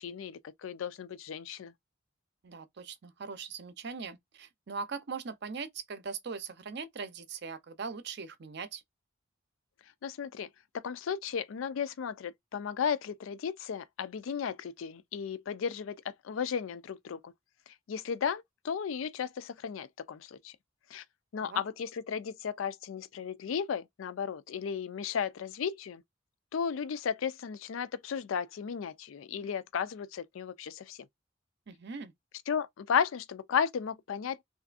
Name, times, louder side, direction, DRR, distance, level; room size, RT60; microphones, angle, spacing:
voice 1, 0.0-1.7 10.0-10.5 10.7-16.0 16.2-17.3 17.9-20.5 20.9-21.0 21.3-26.0 26.5-31.0 32.5-34.4, left 7 dB, 85° left, 0.4 m, -34 dB
voice 2, 2.4-8.8 21.4-21.6 31.7-32.1, right 5 dB, 60° right, 0.6 m, -40 dB
3.3 x 2.6 x 2.4 m
head